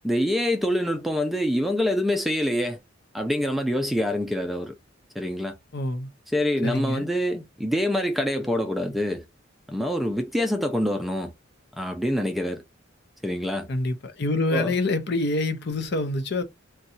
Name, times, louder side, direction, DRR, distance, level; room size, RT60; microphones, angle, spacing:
voice 1, 0.0-2.8 3.1-4.7 5.2-5.5 6.3-9.2 9.7-11.3 11.8-12.6 13.2-13.7 14.5-14.7, equal, ahead, 0.4 m, -25 dB
voice 2, 5.7-6.1 6.6-7.1 13.7-16.4, left 2 dB, 55° left, 0.6 m, -26 dB
2.7 x 2.3 x 4.1 m
head